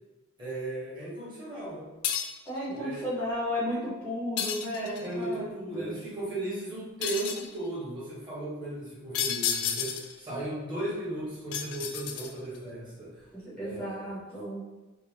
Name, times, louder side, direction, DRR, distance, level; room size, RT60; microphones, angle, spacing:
voice 1, 0.4-1.9 2.7-3.1 5.0-13.3 13.5-14.2, right 1 dB, 20° right, -8 dB, 0.9 m, -36 dB
sound 1, 2.0-2.5 4.4-5.1 7.0-7.5 9.1-10.2 11.5-12.6, left 8 dB, 90° left, 0.3 m, -31 dB
voice 2, 2.5-5.9 13.3-14.6, equal, 5° left, -11 dB, 0.7 m, -34 dB
2.5 x 2.0 x 3.2 m, 1.1 s
head